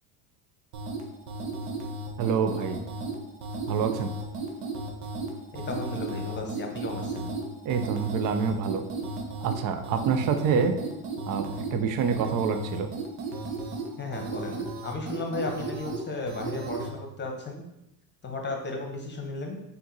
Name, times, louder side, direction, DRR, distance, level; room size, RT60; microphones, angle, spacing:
sound 1, 0.7-16.9, right 2 dB, 65° right, 0.9 m, -35 dB
voice 1, 2.2-2.8 3.7-4.1 7.6-8.8 9.4-10.8 11.3-12.9, right 6 dB, 45° right, 8 dB, 0.5 m, -26 dB
voice 2, 5.5-7.3 14.0-17.7 18.2-19.6, left 2 dB, 25° left, 2 dB, 0.9 m, -35 dB
4.3 x 2.6 x 3.9 m, 0.84 s
supercardioid pair, 100°, 47 cm